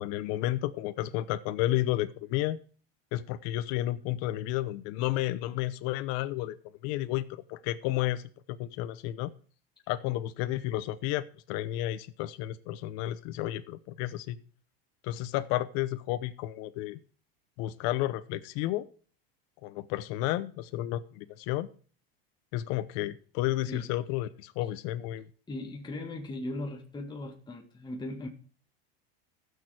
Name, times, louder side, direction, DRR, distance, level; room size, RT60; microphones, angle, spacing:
voice 1, 0.0-2.6 3.1-6.6 6.8-8.2 8.5-9.3 9.9-14.4 15.0-17.0 17.6-18.9 19.6-21.7 22.5-25.2, left 15 dB, 55° left, 12 dB, 0.9 m, -32 dB
voice 2, 25.5-28.3, left 1 dB, 15° left, 1 dB, 1.8 m, -38 dB
15.0 x 6.7 x 4.8 m, 0.41 s
supercardioid pair, 125°, 30 cm